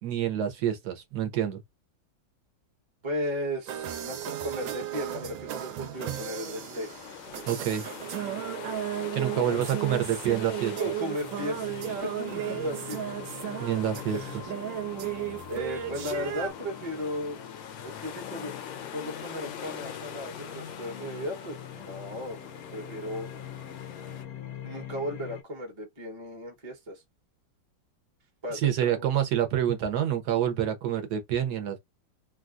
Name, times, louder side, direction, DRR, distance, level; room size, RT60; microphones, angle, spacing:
voice 1, 0.0-1.6 7.4-7.9 9.1-10.7 13.6-14.2 28.6-31.8, right 10 dB, 65° right, 1.2 m, -27 dB
voice 2, 3.0-6.9 9.2-9.8 10.7-11.7 12.0-13.0 15.5-17.4 17.8-18.5 18.9-22.4 22.7-23.3 24.6-27.0 28.4-29.1, equal, 20° right, 0.8 m, -36 dB
sound 1, 3.7-16.5, right 11 dB, 85° right, 1.3 m, -35 dB
sound 2, 5.9-24.2, left 9 dB, 90° left, 1.5 m, -44 dB
sound 3, 11.2-25.4, left 8 dB, 65° left, 0.9 m, -44 dB
3.4 x 2.3 x 2.5 m
omnidirectional pair, 2.0 m